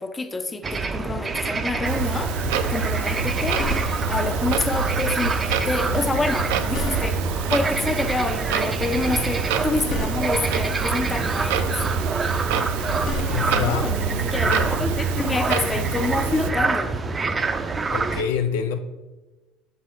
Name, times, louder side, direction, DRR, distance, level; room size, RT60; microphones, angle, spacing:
voice 1, 0.0-5.4 5.6-7.2 7.5-11.8 13.5-16.9, left 3 dB, 20° left, 8 dB, 0.6 m, -27 dB
sound 1, 0.6-18.2, right 4 dB, 30° right, 0.5 m, -27 dB
Clock, 1.8-16.5, right 5 dB, 75° right, 0.5 m, -27 dB
sound 2, 3.4-4.3 6.3-7.4 9.4-10.6 12.6-13.8 15.7-15.9, left 3 dB, 55° left, 0.8 m, -34 dB
voice 2, 13.3-13.8 14.4-14.6 17.9-18.8, left 7 dB, 80° left, 6 dB, 0.4 m, -26 dB
6.8 x 4.7 x 4.2 m, 1.2 s
hypercardioid pair, 70°, 0 cm